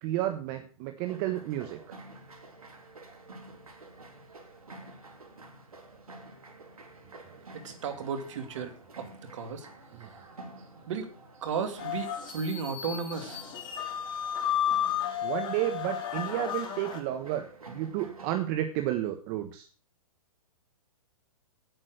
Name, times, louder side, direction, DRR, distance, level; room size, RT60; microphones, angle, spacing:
voice 1, 0.0-2.0 9.9-10.1 15.2-19.7, right 13 dB, 40° right, 7 dB, 1.3 m, -32 dB
sound 1, 1.0-18.4, right 2 dB, 85° right, 3.1 m, -50 dB
voice 2, 7.5-9.7 10.9-11.1 11.4-13.4, right 5 dB, 60° right, 8 dB, 2.5 m, -34 dB
sound 2, 11.8-17.0, left 10 dB, 25° left, 2.4 m, -33 dB
9.0 x 8.7 x 6.5 m, 0.40 s
hypercardioid pair, 125°, 18 cm